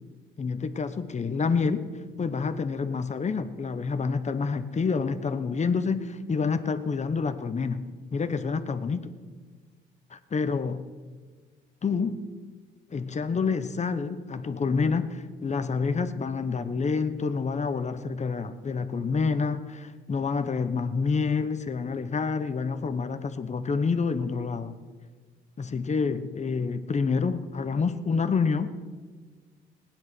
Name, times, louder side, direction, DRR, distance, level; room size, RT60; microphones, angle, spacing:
voice 1, 0.4-1.9 2.2-9.1 10.1-10.8 11.8-12.2 12.9-24.8 25.6-28.7, left 5 dB, 35° left, 1.0 m, -28 dB
17.5 x 10.0 x 6.1 m
cardioid pair, 90°, 20 cm